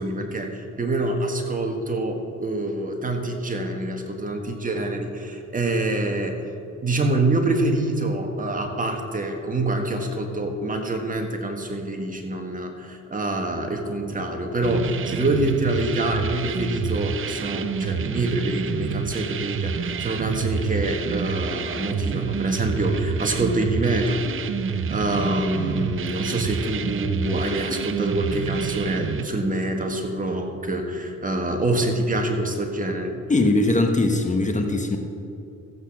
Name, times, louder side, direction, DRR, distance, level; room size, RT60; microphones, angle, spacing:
voice 1, 0.0-6.5 6.8-24.4 24.9-33.1, right 2 dB, 25° right, 3 dB, 1.7 m, -26 dB
sound 1, 14.6-29.2, right 6 dB, 45° right, 0.7 m, -28 dB
voice 2, 33.3-35.0, left 2 dB, 25° left, 4 dB, 1.1 m, -20 dB
14.5 x 8.4 x 6.0 m, 2.7 s
cardioid pair, 90°, 30 cm